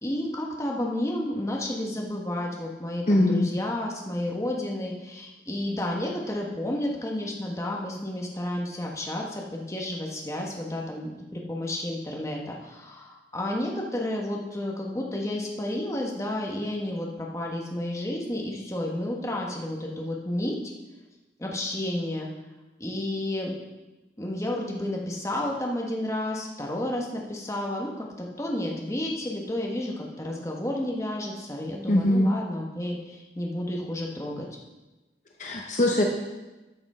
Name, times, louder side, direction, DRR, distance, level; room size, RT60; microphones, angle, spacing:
voice 1, 0.0-20.6 21.4-22.3 22.8-23.6 24.2-34.4, left 1 dB, 15° left, -1 dB, 1.2 m, -31 dB
voice 2, 3.1-3.5 31.9-32.3 35.4-36.0, left 1 dB, 40° left, 0 dB, 0.8 m, -21 dB
13.0 x 6.0 x 4.3 m, 1.1 s
head